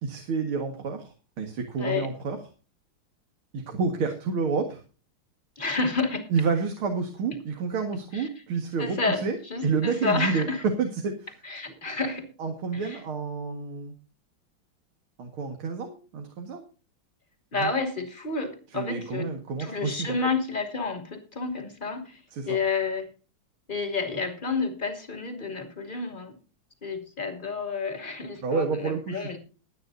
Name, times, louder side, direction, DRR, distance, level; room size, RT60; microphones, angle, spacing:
voice 1, 0.0-2.4 3.5-4.8 6.3-9.4 9.6-10.5 10.8-11.3 11.7-11.8 12.4-13.9 15.2-16.6 17.5-17.7 18.7-20.2 22.3-22.6 28.4-29.4, right 5 dB, 90° right, 4 dB, 2.7 m, -29 dB
voice 2, 1.8-2.1 5.6-6.3 8.1-8.3 8.8-9.2 9.5-10.6 11.4-12.3 12.7-13.0 17.5-19.3 19.6-22.2 22.5-23.1 23.7-26.3 26.8-29.4, left 4 dB, 25° left, 5 dB, 2.7 m, -30 dB
22.0 x 9.5 x 2.7 m, 0.34 s
omnidirectional pair, 2.2 m